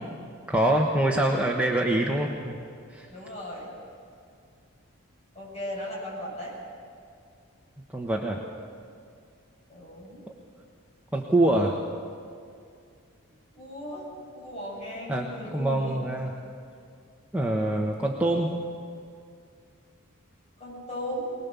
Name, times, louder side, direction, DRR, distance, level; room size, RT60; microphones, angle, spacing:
voice 1, 0.5-2.5 2.9-3.1 7.9-8.5 11.1-11.8 15.1-16.3 17.3-18.6, right 1 dB, 5° right, -1 dB, 1.0 m, -25 dB
voice 2, 3.1-3.7 5.3-6.5 9.7-10.2 13.5-14.1 14.3-16.0 20.6-21.3, equal, 30° left, -5 dB, 8.0 m, -37 dB
23.5 x 20.0 x 6.9 m, 2.3 s
head